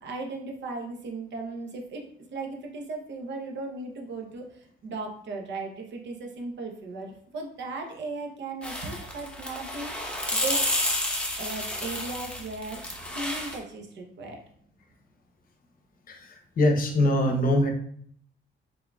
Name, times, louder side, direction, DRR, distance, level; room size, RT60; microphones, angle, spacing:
voice 1, 0.0-2.0 2.3-10.6 11.4-14.4, right 3 dB, 65° right, 2 dB, 0.9 m, -37 dB
sound 1, 8.6-13.6, left 1 dB, 5° left, 0.9 m, -30 dB
voice 2, 16.6-17.7, left 1 dB, 45° left, 3 dB, 0.8 m, -22 dB
3.7 x 3.7 x 2.3 m, 0.63 s
cardioid pair, 90°, 20 cm